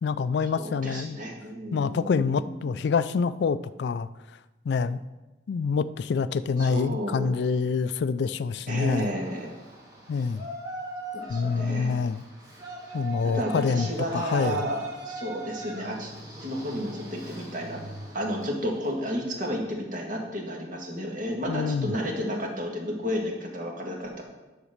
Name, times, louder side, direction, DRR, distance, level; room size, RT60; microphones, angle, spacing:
voice 1, 0.0-1.2 1.7-4.1 4.7-5.0 5.5-9.1 10.1-10.4 11.3-12.2 12.9-14.7 21.5-22.0, left 5 dB, 75° left, 15 dB, 0.3 m, -26 dB
voice 2, 0.5-2.7 6.6-7.4 8.7-9.5 11.1-12.0 13.2-16.1 16.4-17.8 18.1-24.2, equal, 50° right, 0 dB, 1.7 m, -32 dB
Yell, 8.8-19.0, right 1 dB, 20° right, 1.9 m, -41 dB
10.0 x 4.0 x 6.5 m, 1.1 s
head